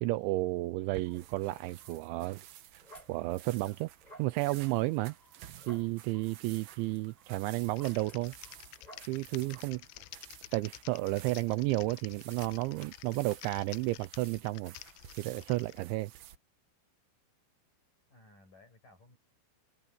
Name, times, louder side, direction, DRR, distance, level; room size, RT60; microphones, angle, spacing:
voice 1, 0.0-2.4 2.7-2.8 3.1-3.9 4.2-5.2 5.7-8.3 9.1-9.8 10.5-14.7 15.2-16.1, right 20 dB, 90° right, 2.6 m, -32 dB
sound 1, 0.8-16.4, right 11 dB, 70° right, 2.4 m, -54 dB
sound 2, 1.1-9.8 10.2-10.3 10.8-11.0, right 1 dB, 5° left, 7.1 m, -58 dB
Typing, 7.7-15.8, left 21 dB, 85° left, 2.9 m, -51 dB
voice 2, 9.1-9.5 18.1-19.2, left 2 dB, 40° left, 9.5 m, -60 dB
omnidirectional pair, 6.0 m